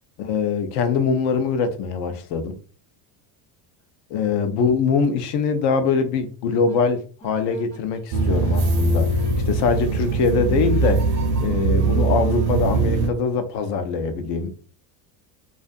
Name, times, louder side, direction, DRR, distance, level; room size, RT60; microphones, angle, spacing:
voice 1, 0.2-2.5 4.1-9.1 9.5-11.1 11.4-14.5, left 5 dB, 55° left, 0.6 m, -23 dB
sound 1, 6.7-6.8 7.2-8.8 9.2-9.3 9.7-9.9 10.7-12.5, right 3 dB, 10° left, 0.4 m, -44 dB
sound 2, 8.1-13.1, right 3 dB, 55° right, 0.7 m, -21 dB
2.4 x 2.3 x 2.5 m
cardioid pair, 130°, 49 cm